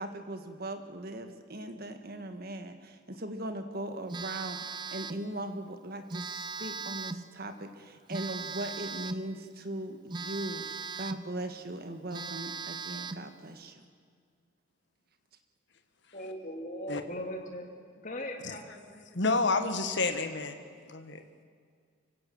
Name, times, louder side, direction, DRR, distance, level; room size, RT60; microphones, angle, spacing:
voice 1, 0.0-10.6 11.0-13.8, right 1 dB, 45° right, 7 dB, 1.7 m, -39 dB
Telephone, 4.1-5.3 6.1-7.3 8.1-9.3 10.1-11.3 11.7-11.8 12.1-13.3, right 4 dB, 20° right, 0.5 m, -39 dB
voice 2, 16.1-19.1, equal, 40° left, 3 dB, 2.6 m, -40 dB
voice 3, 19.1-20.6 20.9-21.2, left 3 dB, 55° left, 8 dB, 1.5 m, -29 dB
25.0 x 16.5 x 7.8 m, 2.1 s
head